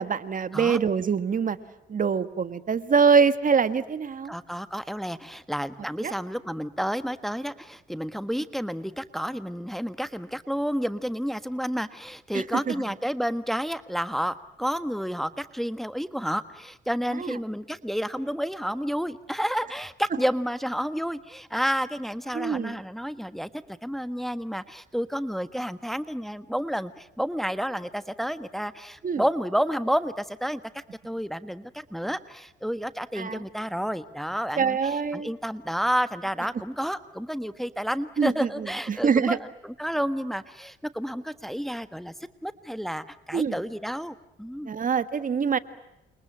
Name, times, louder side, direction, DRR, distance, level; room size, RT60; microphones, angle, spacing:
voice 1, 0.0-1.6 1.9-4.3 6.0-6.1 12.3-12.7 17.2-17.4 22.3-22.8 29.0-29.2 33.2-33.4 34.6-35.3 38.2-39.4 43.3-43.6 44.7-45.6, right 6 dB, 40° right, 13 dB, 1.7 m, -24 dB
voice 2, 4.3-42.1 42.4-44.7, equal, ahead, 12 dB, 1.4 m, -30 dB
29.5 x 27.0 x 7.4 m, 0.91 s
cardioid pair, 90°, 20 cm